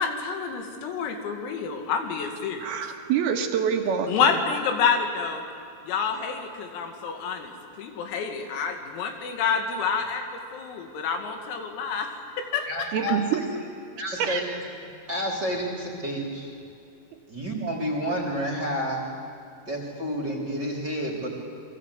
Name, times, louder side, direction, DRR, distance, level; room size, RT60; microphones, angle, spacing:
voice 1, 0.0-2.8 4.1-5.4 5.9-10.2 10.5-12.9, left 6 dB, 90° left, 4 dB, 5.1 m, -28 dB
voice 2, 2.6-4.3 12.9-13.4 14.1-14.4, right 8 dB, 60° right, 4 dB, 3.0 m, -26 dB
voice 3, 12.6-13.4 14.0-16.5 17.3-19.1 19.7-21.3, equal, 25° right, 0 dB, 2.9 m, -30 dB
29.5 x 23.5 x 8.4 m, 2.6 s
omnidirectional pair, 5.9 m